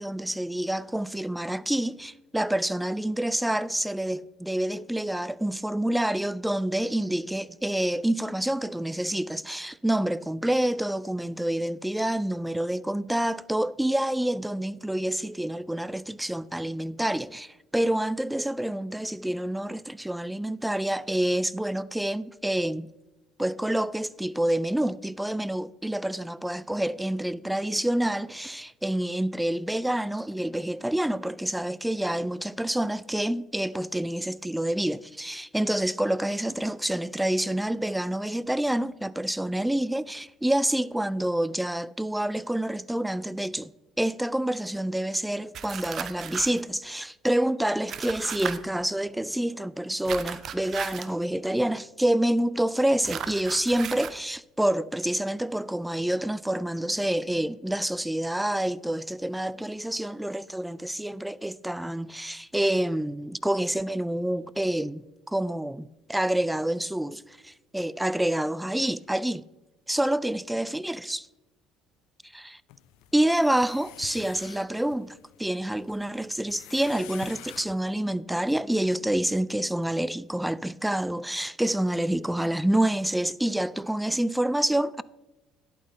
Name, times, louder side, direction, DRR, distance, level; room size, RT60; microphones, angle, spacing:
voice 1, 0.0-22.9 23.4-69.5 69.9-71.3 72.3-72.6 73.1-85.0, right 1 dB, 5° right, 0.3 m, -27 dB
sound 1, 45.5-46.6 47.9-48.6 50.1-51.1 53.0-54.2, right 8 dB, 55° right, 0.7 m, -36 dB
sound 2, 72.7-77.9, left 14 dB, 85° left, 0.5 m, -48 dB
11.0 x 8.6 x 4.0 m
supercardioid pair, 90°, 0 cm